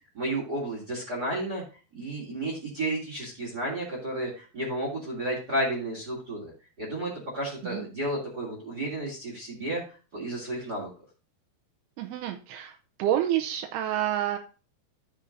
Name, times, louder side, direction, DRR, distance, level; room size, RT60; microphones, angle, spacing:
voice 1, 0.1-1.6 1.9-6.5 6.8-10.9, right 1 dB, 25° right, -3 dB, 3.0 m, -32 dB
voice 2, 12.0-14.4, right 11 dB, 85° right, 5 dB, 2.7 m, -29 dB
14.0 x 6.2 x 2.6 m, 0.35 s
omnidirectional pair, 4.5 m